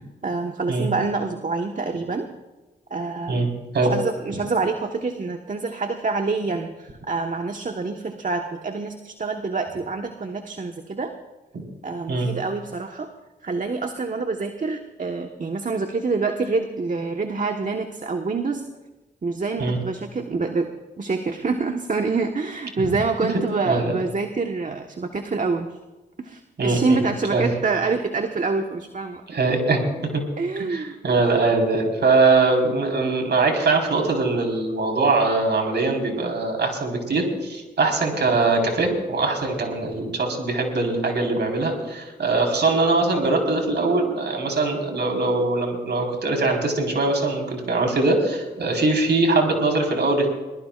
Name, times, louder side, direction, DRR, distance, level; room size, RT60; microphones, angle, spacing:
voice 1, 0.2-2.3 2.9-3.5 3.9-11.1 11.8-13.1 13.4-18.7 19.2-20.7 21.0-25.8 26.2-29.5 30.4-31.0, right 4 dB, 40° right, 5 dB, 1.3 m, -26 dB
voice 2, 26.6-27.0 27.3-27.5 29.3-30.2 30.7-50.3, right 3 dB, 60° right, 2 dB, 4.4 m, -22 dB
22.5 x 20.0 x 2.5 m, 1.2 s
supercardioid pair, 50°, 20 cm